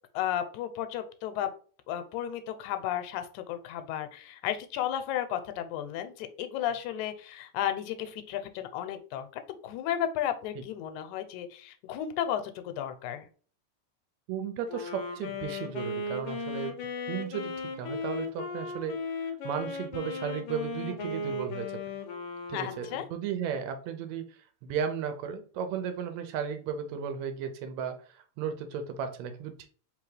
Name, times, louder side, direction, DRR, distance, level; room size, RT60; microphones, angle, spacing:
voice 1, 0.1-1.5 1.9-13.3 22.5-23.1, left 10 dB, 90° left, 9 dB, 2.0 m, -33 dB
voice 2, 14.3-16.7 17.1-17.5 17.8-19.0 19.4-21.9 22.5-29.7, right 7 dB, 75° right, 7 dB, 1.8 m, -35 dB
Wind instrument woodwind instrument, 14.7-23.3, left 3 dB, 75° left, 1.3 m, -36 dB
4.0 x 3.4 x 3.2 m, 0.41 s
omnidirectional pair, 3.3 m